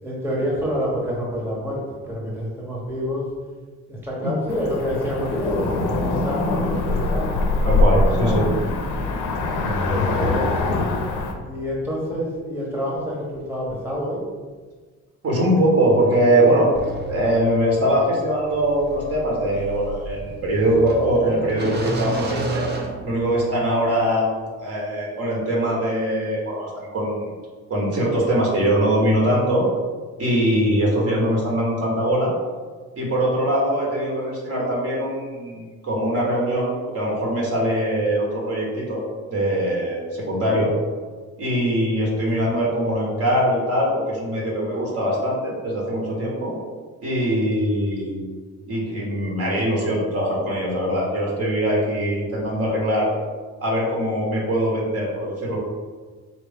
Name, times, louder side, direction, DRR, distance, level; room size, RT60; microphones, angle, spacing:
voice 1, 0.0-3.2 3.9-7.4 8.2-8.5 9.6-10.9 11.5-14.2, equal, 10° right, -5 dB, 1.1 m, -27 dB
Cricket / Motor vehicle (road), 4.5-11.3, left 2 dB, 90° left, 0.6 m, -23 dB
voice 2, 7.6-8.4 15.2-16.7 17.0-22.7 23.0-24.3 24.6-27.3 27.7-29.6 30.2-32.3 33.0-40.7 41.4-46.5 47.0-48.2 48.7-53.1 53.6-55.6, right 1 dB, 50° right, -3 dB, 1.4 m, -22 dB
sound 1, 16.8-23.7, right 3 dB, 35° right, 0.6 m, -33 dB
4.1 x 2.9 x 3.6 m, 1.4 s
cardioid pair, 90°, 30 cm